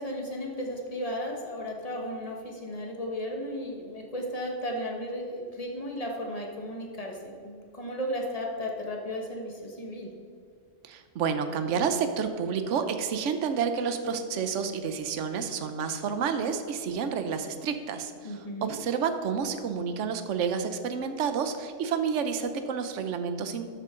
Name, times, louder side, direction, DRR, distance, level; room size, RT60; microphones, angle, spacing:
voice 1, 0.0-10.1 18.2-18.7, equal, 30° left, 1 dB, 1.5 m, -35 dB
voice 2, 10.8-23.7, right 6 dB, 70° right, 8 dB, 1.1 m, -30 dB
12.5 x 8.3 x 3.8 m, 2.3 s
omnidirectional pair, 1.4 m